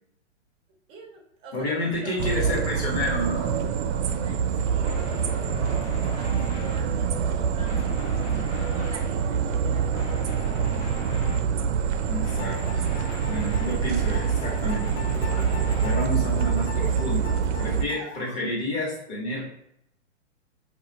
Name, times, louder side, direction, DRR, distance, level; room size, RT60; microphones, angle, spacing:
voice 1, 0.9-1.7 2.0-2.5 4.1-10.8, right 4 dB, 15° right, -1 dB, 0.5 m, -46 dB
voice 2, 1.5-3.6 12.1-12.9 13.3-17.3 17.6-19.6, left 1 dB, 35° left, -2 dB, 1.0 m, -30 dB
sound 1, 2.2-17.8, right 7 dB, 65° right, 0.5 m, -26 dB
sound 2, 4.8-6.8 7.5-9.1 9.9-11.5 12.2-16.0, left 4 dB, 65° left, 0.7 m, -40 dB
sound 3, 12.4-18.5, left 5 dB, 90° left, 1.0 m, -40 dB
2.6 x 2.4 x 3.9 m, 0.76 s
hypercardioid pair, 140°, 37 cm